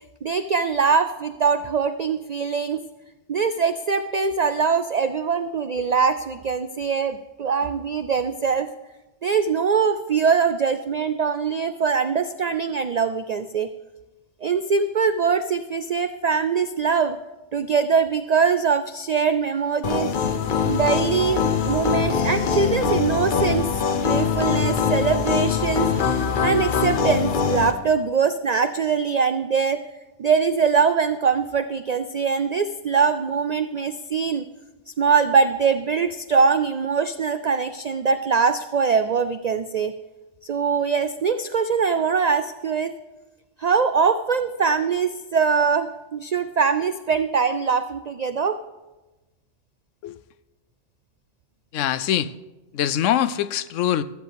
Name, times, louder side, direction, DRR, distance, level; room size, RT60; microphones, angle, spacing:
voice 1, 0.2-2.8 3.3-8.7 9.2-13.7 14.4-17.2 17.5-20.1 20.6-23.7 24.0-25.9 26.4-29.8 30.2-34.5 34.9-39.9 40.4-42.9 43.6-48.6, right 5 dB, 90° right, 11 dB, 0.3 m, -22 dB
sound 1, 19.8-27.7, left 6 dB, 50° left, 0.8 m, -23 dB
voice 2, 51.7-52.3 52.7-54.0, left 10 dB, 80° left, 16 dB, 0.9 m, -23 dB
15.5 x 13.0 x 3.4 m, 1.1 s
omnidirectional pair, 1.3 m